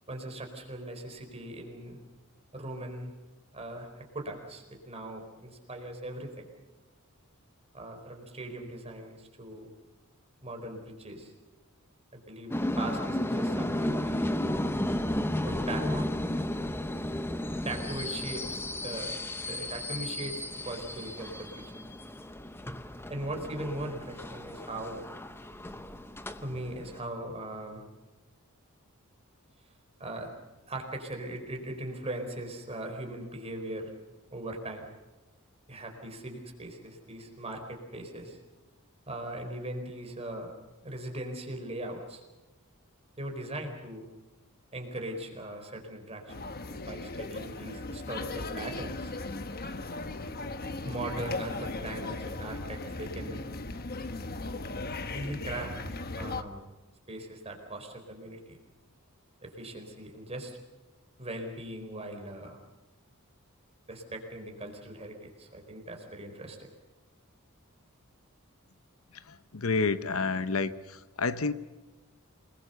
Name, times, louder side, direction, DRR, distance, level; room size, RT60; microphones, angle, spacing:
voice 1, 0.1-2.0 2.5-3.1 3.5-3.9 4.1-6.5 7.7-9.7 10.4-11.3 12.1-14.4 15.4-16.1 17.6-19.1 19.5-21.8 23.1-25.0 26.4-27.8 30.0-30.3 30.7-33.9 34.3-34.8 35.7-38.4 39.1-40.5 40.8-42.2 43.2-44.1 44.7-46.3 46.6-49.1 50.8-53.5 55.1-55.7 56.1-56.6 57.1-58.6 59.4-60.6 61.2-62.6 63.9-66.7, right 1 dB, 30° right, 3 dB, 4.3 m, -39 dB
sound 1, 12.5-27.0, left 1 dB, 10° left, 0.9 m, -33 dB
sound 2, 46.3-56.4, left 2 dB, 45° left, 1.2 m, -37 dB
voice 2, 69.1-71.5, left 4 dB, 70° left, 12 dB, 0.9 m, -30 dB
27.5 x 20.5 x 6.9 m, 1.1 s
head